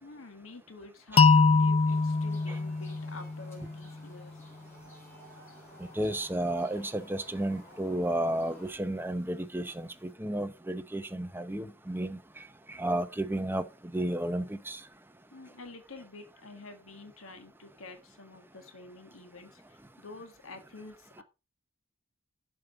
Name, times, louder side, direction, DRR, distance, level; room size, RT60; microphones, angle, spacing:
voice 1, 0.0-4.5 15.3-21.2, left 3 dB, 85° left, 1.7 m, -48 dB
sound 1, 1.2-4.1, left 4 dB, 30° left, 0.4 m, -24 dB
sound 2, 1.9-8.7, left 1 dB, 15° left, 4.0 m, -54 dB
voice 2, 6.0-12.2 12.7-13.6 13.9-14.8, right 1 dB, 10° right, 0.8 m, -32 dB
7.6 x 5.2 x 6.8 m
head